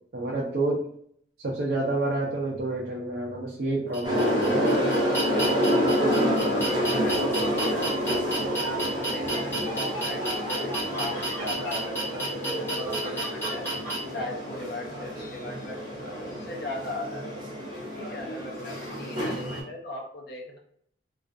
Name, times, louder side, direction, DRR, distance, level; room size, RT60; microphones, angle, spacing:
voice 1, 0.1-0.8 1.4-4.6, right 2 dB, 55° right, -3 dB, 0.4 m, -28 dB
sound 1, 3.9-14.0, right 2 dB, 15° left, 0.7 m, -32 dB
sound 2, 4.0-19.6, equal, 25° right, 0.9 m, -28 dB
voice 2, 5.8-8.0 8.4-13.7 14.1-17.2 17.9-20.6, left 2 dB, 55° left, -1 dB, 0.6 m, -38 dB
2.3 x 2.2 x 2.5 m, 0.65 s
head